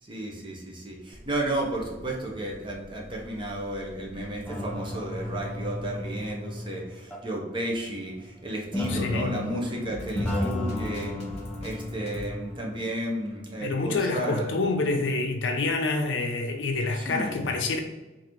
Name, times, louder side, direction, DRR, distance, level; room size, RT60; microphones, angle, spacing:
voice 1, 0.0-11.1 11.6-14.5 16.9-17.5, right 1 dB, 25° right, -1 dB, 0.7 m, -33 dB
sound 1, 1.1-6.3, equal, 45° right, 1.0 m, -49 dB
sound 2, 4.5-7.5 8.7-12.8, left 1 dB, 5° left, 0.5 m, -33 dB
voice 2, 8.9-9.4 13.6-17.8, left 3 dB, 90° left, 4 dB, 0.6 m, -27 dB
Drum kit, 9.9-12.3, left 1 dB, 40° left, 0.8 m, -42 dB
3.8 x 2.6 x 3.0 m, 1.1 s
head